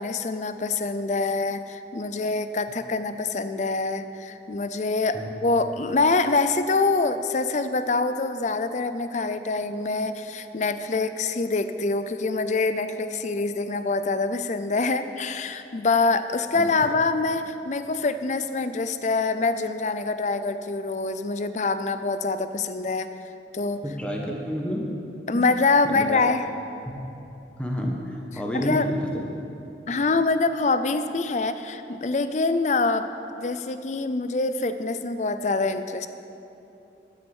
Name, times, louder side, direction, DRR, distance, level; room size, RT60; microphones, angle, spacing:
voice 1, 0.0-23.1 23.5-23.8 25.3-26.4 28.5-28.9 29.9-33.1 33.4-36.1, left 3 dB, 40° left, 11 dB, 0.5 m, -25 dB
voice 2, 23.8-24.9 25.3-25.5 25.8-26.2 26.9-27.0 27.6-29.2, equal, 5° left, -1 dB, 1.2 m, -29 dB
13.0 x 6.5 x 7.2 m, 2.8 s
head